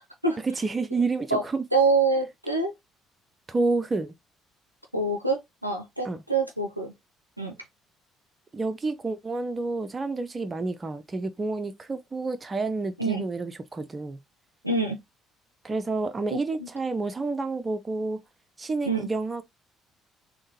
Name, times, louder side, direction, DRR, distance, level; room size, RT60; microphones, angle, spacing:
voice 1, 0.4-1.6 3.5-4.1 6.0-6.2 8.5-14.2 15.6-18.2 18.6-19.4, right 3 dB, 25° right, 0.5 m, -29 dB
voice 2, 1.7-2.7 4.9-6.9 7.4-7.6 13.0-13.2 14.6-15.0 16.3-16.7 18.9-19.1, right 3 dB, 90° right, 0.4 m, -25 dB
3.6 x 2.1 x 2.7 m
figure-of-eight pair, 50°, 0 cm